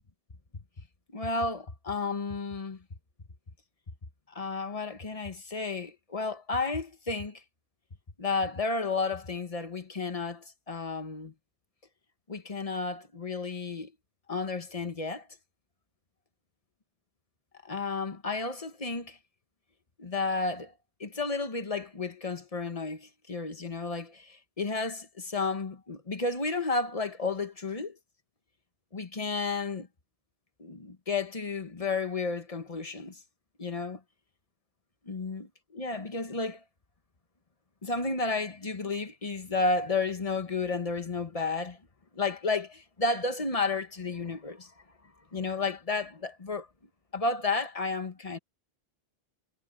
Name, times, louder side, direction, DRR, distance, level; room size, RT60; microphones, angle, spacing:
voice 1, 1.1-2.8 4.3-7.4 8.2-11.3 12.3-13.9 14.3-15.3 17.6-19.2 20.0-20.7 21.0-28.0 28.9-29.9 30.6-33.2 33.6-34.0 35.1-36.6 37.8-41.8 42.1-44.7 45.3-46.7 47.1-48.4, left 3 dB, 35° left, 1.4 m, -32 dB
omnidirectional pair, 1.1 m